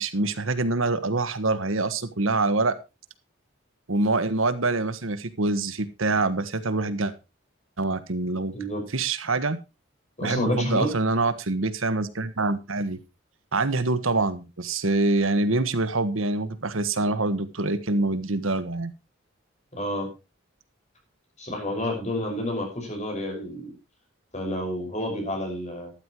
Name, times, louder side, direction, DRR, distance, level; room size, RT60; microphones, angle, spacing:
voice 1, 0.0-2.8 3.9-7.1 7.8-8.5 8.9-9.6 10.2-13.0 13.5-18.9, right 2 dB, 80° right, 13 dB, 1.4 m, -25 dB
voice 2, 10.2-10.9 19.7-20.1 21.4-23.7 24.3-25.9, left 1 dB, 35° left, 2 dB, 5.5 m, -29 dB
14.0 x 12.0 x 3.0 m, 0.27 s
head